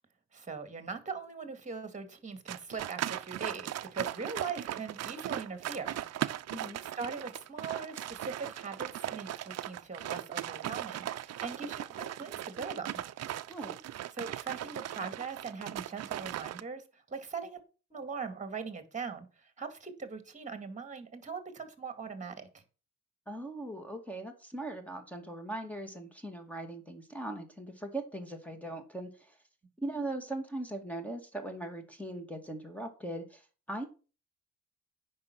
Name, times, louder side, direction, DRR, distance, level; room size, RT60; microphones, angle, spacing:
voice 1, 0.3-6.0 6.8-13.0 14.1-17.6 17.9-22.5, right 5 dB, 25° right, 9 dB, 2.3 m, -41 dB
sound 1, 2.5-16.6, right 12 dB, 55° right, 0.6 m, -38 dB
voice 2, 23.3-29.1 29.8-33.4 33.7-33.8, right 1 dB, 5° left, 6 dB, 2.2 m, -39 dB
9.4 x 5.5 x 6.1 m, 0.35 s
cardioid pair, 90°, 30 cm